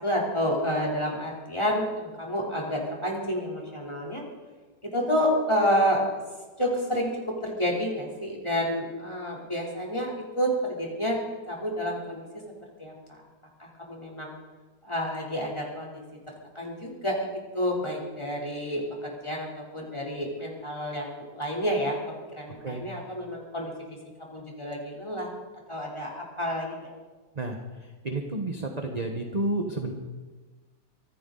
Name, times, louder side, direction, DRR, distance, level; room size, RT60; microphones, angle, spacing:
voice 1, 0.0-4.2 4.8-6.0 6.6-12.4 12.8-12.9 13.6-14.3 14.8-16.0 16.5-22.0 22.3-23.7 24.3-25.3 25.7-26.9, equal, 15° left, -2 dB, 3.2 m, -29 dB
voice 2, 22.5-22.9 27.3-29.9, right 2 dB, 25° right, 3 dB, 1.0 m, -31 dB
24.5 x 13.5 x 3.9 m, 1.3 s
omnidirectional pair, 2.1 m